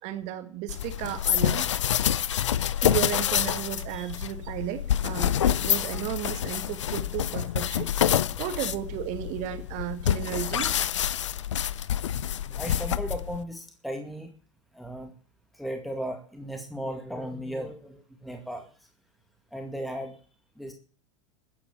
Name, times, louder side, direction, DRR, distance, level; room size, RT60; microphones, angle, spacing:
voice 1, 0.0-1.7 2.8-7.9 8.4-10.9, right 12 dB, 50° right, 2.2 m, -34 dB
sound 1, 0.7-13.4, left 10 dB, 75° left, 0.7 m, -27 dB
voice 2, 3.9-4.2 5.9-6.0 8.3-8.4 12.2-14.3 14.7-15.1 15.5-18.9 19.5-20.2 20.6-20.7, equal, ahead, 2.2 m, -36 dB
14.5 x 9.6 x 7.3 m
figure-of-eight pair, 85°, 16 cm